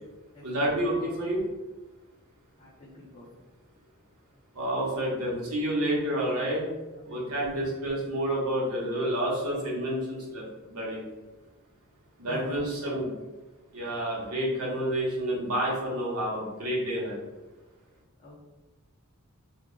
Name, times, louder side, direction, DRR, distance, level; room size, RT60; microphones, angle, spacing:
voice 1, 0.4-1.5 4.5-6.7 7.1-11.0 12.2-13.1 13.7-17.2, right 1 dB, 80° right, -4 dB, 0.9 m, -29 dB
voice 2, 2.6-3.3 7.0-7.7 12.3-12.9 18.2-18.4, left 1 dB, 30° left, -7 dB, 0.5 m, -45 dB
2.3 x 2.1 x 3.6 m, 1.1 s
head